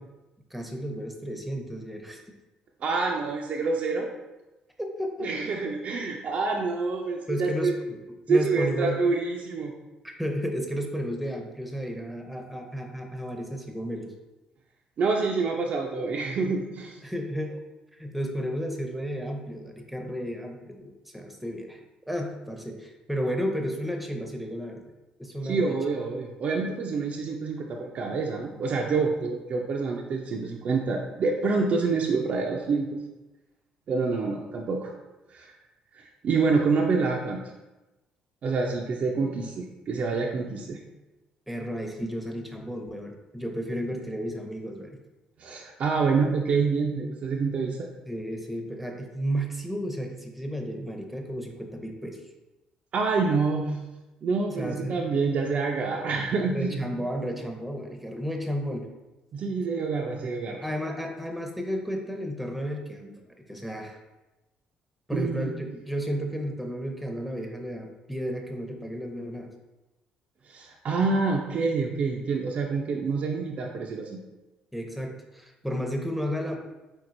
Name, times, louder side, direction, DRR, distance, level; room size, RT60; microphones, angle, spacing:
voice 1, 0.5-2.2 4.8-5.3 7.3-8.0 8.3-9.0 10.0-14.1 17.0-17.6 17.9-21.8 22.1-24.9 25.2-25.8 41.5-45.0 48.1-52.2 54.6-55.1 56.5-58.9 60.6-64.0 65.1-69.5 74.7-76.6, equal, 5° right, 3 dB, 0.7 m, -33 dB
voice 2, 2.8-4.1 5.2-7.7 8.3-9.7 15.0-17.0 25.4-33.0 33.9-34.9 35.3-35.5 35.9-37.4 38.4-40.8 45.4-47.9 52.9-53.8 54.2-56.8 59.3-60.6 65.1-65.5 70.5-74.2, right 4 dB, 55° right, 0 dB, 0.5 m, -27 dB
4.4 x 3.8 x 2.6 m, 1.1 s
supercardioid pair, 65°, 3 cm